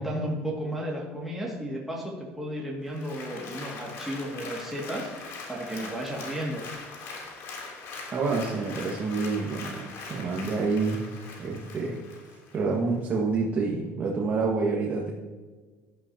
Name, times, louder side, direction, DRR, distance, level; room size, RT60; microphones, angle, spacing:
voice 1, 0.0-6.7, right 1 dB, 5° right, -4 dB, 2.2 m, -33 dB
Applause, 2.9-12.6 13.1-13.2, left 4 dB, 60° left, 3.2 m, -41 dB
voice 2, 8.1-11.0 11.4-12.0 12.5-15.1, right 4 dB, 35° right, -3 dB, 1.7 m, -28 dB
15.5 x 11.5 x 2.9 m, 1.4 s
cardioid pair, 120°, 5 cm